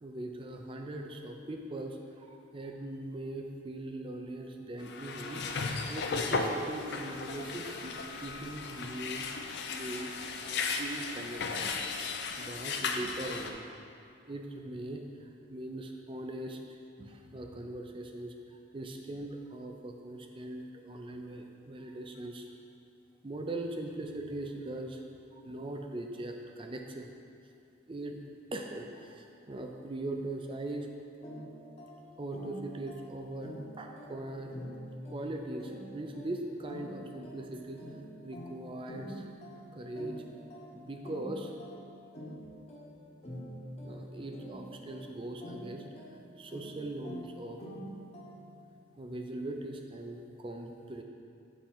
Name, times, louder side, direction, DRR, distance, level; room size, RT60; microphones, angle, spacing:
voice 1, 0.0-5.4 5.9-9.3 9.7-11.8 12.4-13.7 14.2-22.5 23.2-25.0 25.3-27.1 27.9-28.2 28.5-30.9 32.2-34.5 35.1-37.9 38.2-39.3 39.7-40.2 40.7-41.5 43.8-45.9 46.4-47.6 49.0-51.0, right 1 dB, 25° right, 3 dB, 0.4 m, -40 dB
sound 1, 4.8-13.5, left 4 dB, 55° left, 0.4 m, -35 dB
sound 2, 31.2-48.7, equal, 30° left, 0.9 m, -47 dB
7.1 x 3.7 x 4.4 m, 2.5 s
head